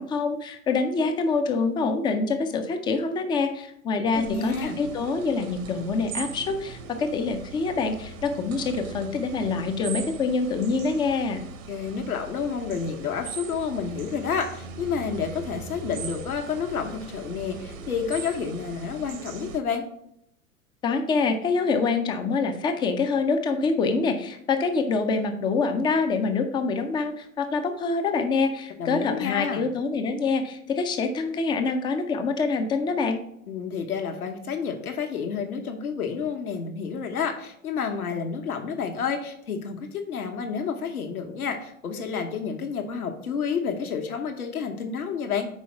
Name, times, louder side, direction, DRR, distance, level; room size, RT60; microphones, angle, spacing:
voice 1, 0.0-11.4 20.8-33.2, left 4 dB, 10° left, 6 dB, 0.3 m, -25 dB
voice 2, 3.9-4.8 11.7-19.8 28.8-29.7 33.5-45.5, left 6 dB, 80° left, 4 dB, 1.1 m, -30 dB
sound 1, 4.1-19.6, right 5 dB, 65° right, 1.0 m, -40 dB
5.5 x 4.3 x 5.6 m, 0.75 s
figure-of-eight pair, 95°, 43 cm